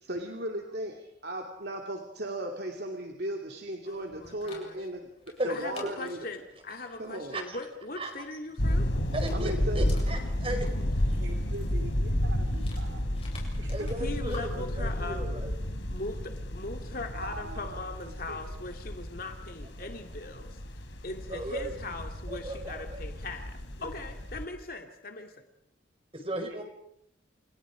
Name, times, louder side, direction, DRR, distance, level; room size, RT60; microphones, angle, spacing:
voice 1, 0.0-5.1 5.4-6.2 7.0-7.4 9.3-9.8, right 1 dB, 55° right, 2 dB, 2.7 m, -36 dB
voice 2, 3.9-4.8 5.5-8.9 14.0-15.2 15.9-20.6 21.0-25.3, left 2 dB, 50° left, 4 dB, 2.5 m, -40 dB
Dog, 3.9-16.8, left 4 dB, 30° left, 7.9 m, -53 dB
sound 1, 8.6-24.5, equal, 70° left, 3.8 m, -32 dB
voice 3, 9.1-10.6 13.7-15.5 21.3-21.7 22.3-23.0 26.1-26.6, right 1 dB, 30° right, 5 dB, 5.0 m, -35 dB
voice 4, 11.1-13.0 13.5-13.9 17.1-18.6, right 2 dB, 80° right, 5 dB, 2.8 m, -45 dB
29.5 x 28.5 x 5.1 m, 0.74 s
head